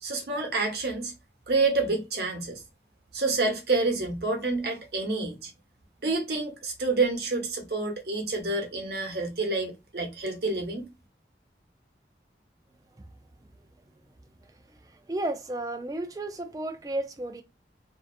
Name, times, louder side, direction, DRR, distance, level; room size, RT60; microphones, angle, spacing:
voice 1, 0.0-1.1 1.5-2.6 3.1-5.5 6.0-10.8, right 3 dB, 70° right, 0.9 m, -28 dB
voice 2, 15.1-17.4, right 1 dB, 20° right, 0.3 m, -32 dB
2.6 x 2.3 x 2.3 m
head